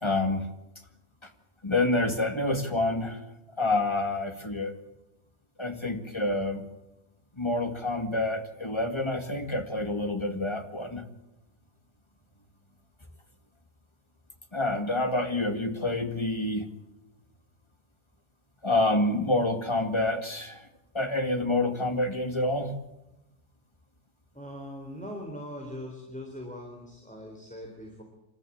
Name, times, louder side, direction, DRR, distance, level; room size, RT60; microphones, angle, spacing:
voice 1, 0.0-0.5 1.6-3.2 3.6-4.7 5.6-6.6 7.4-11.0 14.5-16.7 18.6-20.7 20.9-22.7, left 2 dB, 25° left, 7 dB, 2.2 m, -27 dB
voice 2, 24.3-28.0, equal, 5° left, 1 dB, 3.9 m, -41 dB
27.5 x 13.5 x 8.6 m, 0.96 s
omnidirectional pair, 1.2 m